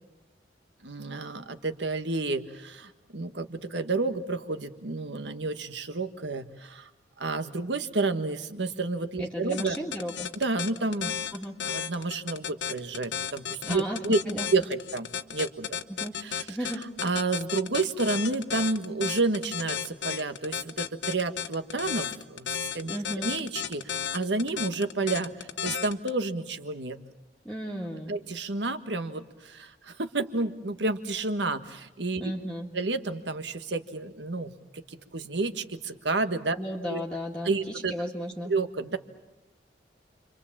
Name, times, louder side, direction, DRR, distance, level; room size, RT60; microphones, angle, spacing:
voice 1, 0.8-6.9 7.2-9.8 10.4-11.1 11.6-14.2 14.5-15.7 16.2-16.7 17.0-27.0 28.1-32.3 32.7-36.6 36.9-37.0 37.4-37.9 38.4-39.0, right 3 dB, 75° right, 9 dB, 1.5 m, -30 dB
voice 2, 9.2-10.3 11.3-11.6 13.6-14.5 15.9-16.2 16.5-16.9 22.9-23.3 27.5-28.2 32.2-32.7 36.6-38.5, equal, 5° left, -2 dB, 1.9 m, -34 dB
sound 1, 9.5-26.1, left 8 dB, 80° left, 1.1 m, -33 dB
29.5 x 24.5 x 7.4 m, 0.99 s
head